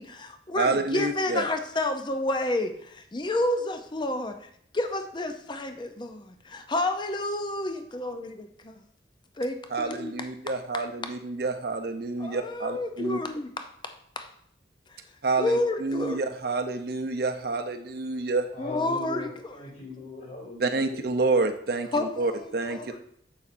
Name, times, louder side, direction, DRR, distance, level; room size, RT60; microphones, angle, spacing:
voice 1, 0.0-4.5 4.7-8.8 9.4-10.2 12.2-14.3 15.4-16.2 18.6-19.5 21.9-23.0, left 2 dB, 25° left, 7 dB, 0.5 m, -30 dB
voice 2, 0.6-1.5 9.7-13.2 15.2-18.4 20.6-22.8, right 3 dB, 55° right, 7 dB, 0.6 m, -28 dB
voice 3, 18.5-21.0, left 3 dB, 40° left, -5 dB, 2.8 m, -40 dB
7.4 x 6.8 x 2.6 m, 0.67 s
head